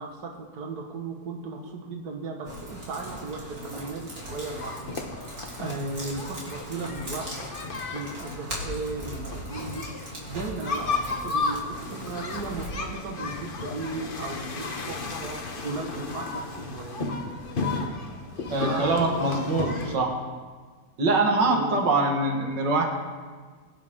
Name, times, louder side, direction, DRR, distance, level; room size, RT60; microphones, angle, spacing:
voice 1, 0.0-7.3 7.9-17.1 18.6-20.1 21.4-21.8, right 3 dB, 60° right, 1 dB, 2.0 m, -36 dB
sound 1, 2.4-12.7, right 1 dB, 45° right, 3.7 m, -40 dB
sound 2, 4.6-20.0, left 3 dB, 35° left, 1.0 m, -34 dB
voice 2, 18.5-20.1 21.0-22.9, right 2 dB, 80° right, 2 dB, 2.3 m, -23 dB
22.0 x 9.5 x 3.7 m, 1.5 s
omnidirectional pair, 1.9 m